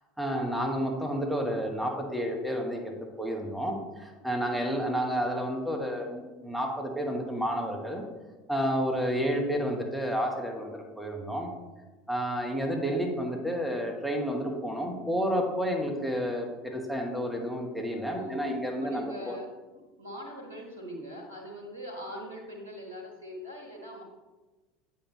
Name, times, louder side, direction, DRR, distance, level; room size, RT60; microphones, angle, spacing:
voice 1, 0.2-8.0 8.5-11.5 12.1-19.4, equal, ahead, 1 dB, 1.3 m, -30 dB
voice 2, 18.1-18.4 18.8-24.0, equal, 85° right, 1 dB, 1.4 m, -42 dB
8.4 x 5.7 x 3.2 m, 1.2 s
figure-of-eight pair, 75°, 0 cm